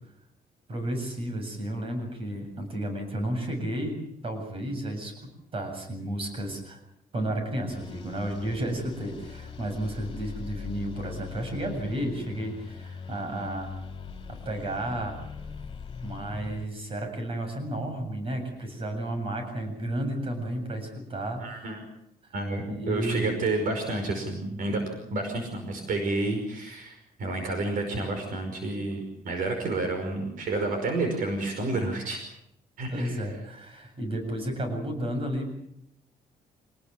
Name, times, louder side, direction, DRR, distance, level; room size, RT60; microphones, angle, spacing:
voice 1, 0.7-4.0 4.2-6.8 7.1-13.7 14.3-15.2 16.0-21.7 22.7-23.3 32.9-35.5, right 1 dB, 40° right, 5 dB, 7.6 m, -32 dB
sound 1, 7.7-16.7, left 6 dB, 30° left, 3.3 m, -41 dB
voice 2, 21.4-21.8 22.3-24.8 25.1-32.2 32.8-33.3, right 2 dB, 65° right, 5 dB, 5.4 m, -30 dB
26.5 x 19.5 x 7.1 m, 0.77 s
cardioid pair, 155°, 15 cm